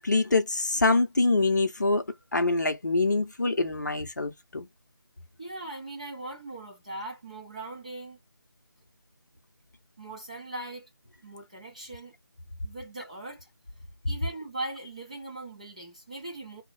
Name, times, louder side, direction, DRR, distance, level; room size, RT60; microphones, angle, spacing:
voice 1, 0.0-2.0 2.3-4.7, left 3 dB, 45° left, 0.7 m, -25 dB
voice 2, 5.4-8.2 10.0-10.9 11.2-12.1 12.6-13.5 14.1-16.6, right 2 dB, 15° right, 0.6 m, -40 dB
2.9 x 2.1 x 3.9 m
figure-of-eight pair, 175°, 13 cm